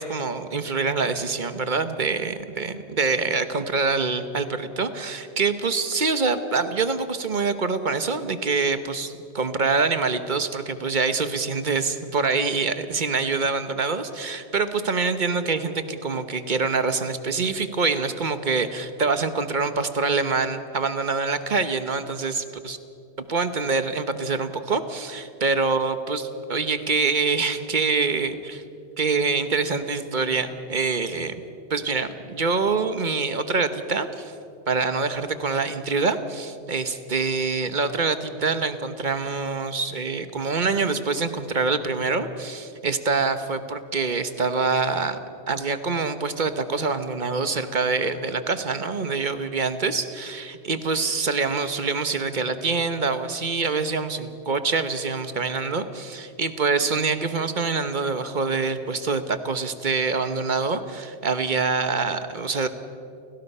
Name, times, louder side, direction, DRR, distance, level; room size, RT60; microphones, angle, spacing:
voice 1, 0.0-22.8 23.2-28.6 29.0-31.3 31.7-34.3 34.7-45.2 45.5-62.7, right 4 dB, 45° right, 10 dB, 1.2 m, -25 dB
30.0 x 17.0 x 5.6 m, 2.5 s
omnidirectional pair, 1.1 m